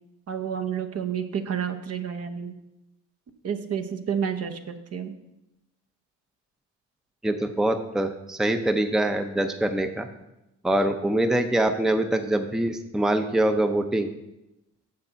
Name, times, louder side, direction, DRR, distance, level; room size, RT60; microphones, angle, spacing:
voice 1, 0.3-2.5 3.4-5.1, right 7 dB, 55° right, 5 dB, 1.0 m, -30 dB
voice 2, 7.2-10.1 10.6-14.1, right 1 dB, ahead, 7 dB, 0.6 m, -24 dB
7.1 x 6.7 x 5.7 m, 0.92 s
cardioid pair, 90°, 30 cm